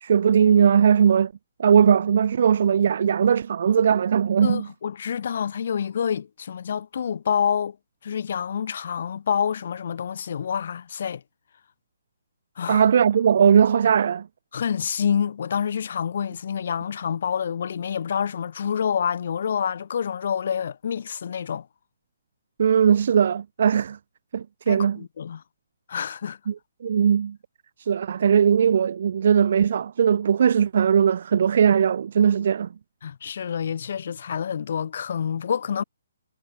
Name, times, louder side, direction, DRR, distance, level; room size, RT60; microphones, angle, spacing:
voice 1, 0.0-1.3 1.6-4.7 12.7-14.3 22.6-24.0 24.3-25.0 26.5-26.6 26.8-27.4 27.8-32.7, right 8 dB, 50° right, 2.4 m, -19 dB
voice 2, 4.4-7.8 8.0-11.2 12.6-12.8 14.5-21.7 24.7-25.4 25.9-26.4 33.0-35.8, left 7 dB, 50° left, 7.5 m, -27 dB
hypercardioid pair, 170°, 0 cm